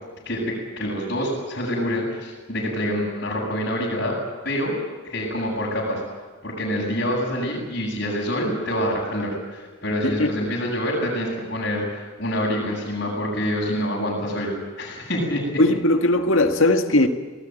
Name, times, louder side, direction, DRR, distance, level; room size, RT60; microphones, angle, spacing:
voice 1, 0.2-4.2 4.4-4.7 5.0-6.0 6.4-15.6, equal, 50° left, -6 dB, 7.9 m, -26 dB
voice 2, 10.0-10.5 15.6-17.1, left 2 dB, 75° left, 5 dB, 1.8 m, -19 dB
27.0 x 18.5 x 9.2 m, 1.3 s
head